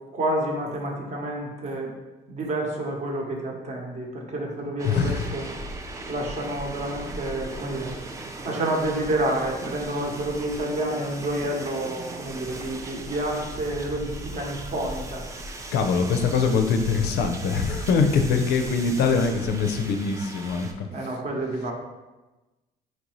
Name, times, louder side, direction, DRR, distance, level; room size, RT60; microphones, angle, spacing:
voice 1, 0.1-1.9 2.3-5.4 6.1-15.2 20.9-21.7, right 1 dB, 45° right, 0 dB, 0.8 m, -29 dB
voice 2, 4.8-5.4 15.7-21.1, left 5 dB, 75° left, 6 dB, 0.4 m, -23 dB
sound 1, 4.8-20.7, right 2 dB, 20° right, 0.4 m, -38 dB
4.2 x 2.6 x 3.0 m, 1.1 s
cardioid pair, 110°, 17 cm